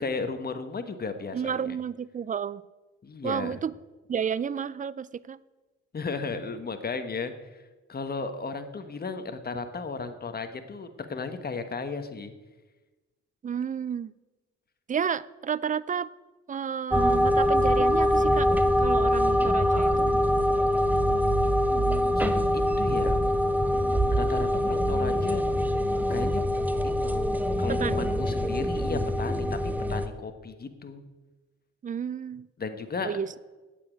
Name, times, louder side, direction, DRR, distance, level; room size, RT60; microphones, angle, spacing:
voice 1, 0.0-1.8 3.0-3.6 5.9-7.6 7.9-12.3 21.7-23.2 24.1-25.8 26.1-26.4 27.0-27.2 27.6-31.0 32.6-33.2, left 4 dB, 30° left, 8 dB, 1.4 m, -35 dB
voice 2, 1.3-2.6 3.2-3.7 4.1-5.4 13.4-14.1 14.9-16.1 16.5-18.5 18.8-20.1 27.7-28.1 31.8-32.5 33.0-33.4, right 7 dB, 25° right, 20 dB, 0.4 m, -31 dB
sound 1, 16.9-30.1, equal, 5° right, 0.9 m, -24 dB
8.5 x 8.4 x 9.0 m, 1.2 s
cardioid pair, 90°, 30 cm